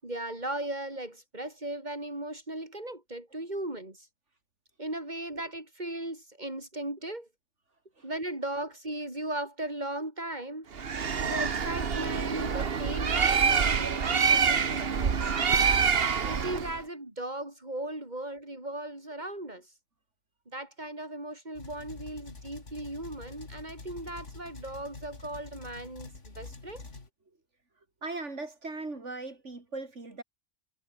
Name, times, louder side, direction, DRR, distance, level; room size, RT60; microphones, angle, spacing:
voice 1, 0.0-4.0 4.8-7.3 8.0-10.7 11.2-15.7 16.2-19.7 20.5-26.8, right 1 dB, 40° right, 5.7 m, -37 dB
Bird, 10.8-16.8, right 6 dB, 55° right, 1.4 m, -26 dB
sound 1, 21.6-27.1, left 3 dB, 80° left, 3.5 m, -46 dB
voice 2, 28.0-30.2, right 3 dB, 80° right, 4.2 m, -38 dB
omnidirectional pair, 1.2 m